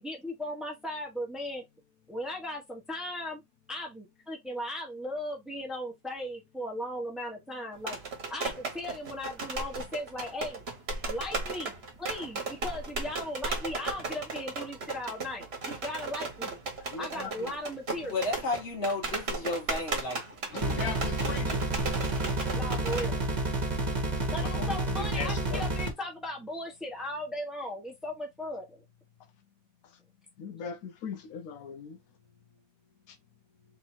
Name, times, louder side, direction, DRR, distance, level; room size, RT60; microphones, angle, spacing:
voice 1, 0.0-1.7 2.1-3.4 3.7-8.0 8.3-10.6 11.0-16.6 17.0-18.2 22.5-23.2 24.3-28.8, left 1 dB, ahead, 1.2 m, -37 dB
sound 1, 7.8-23.1, right 3 dB, 50° right, 1.4 m, -36 dB
voice 2, 16.9-17.5 20.5-21.7 24.5-24.8 25.2-25.6 30.4-32.0 33.1-33.2, left 6 dB, 80° left, 1.2 m, -39 dB
voice 3, 18.1-20.2 20.5-20.9, left 2 dB, 55° left, 1.6 m, -33 dB
sound 2, 20.6-25.9, right 2 dB, 30° right, 1.4 m, -30 dB
3.5 x 2.7 x 4.4 m
omnidirectional pair, 1.4 m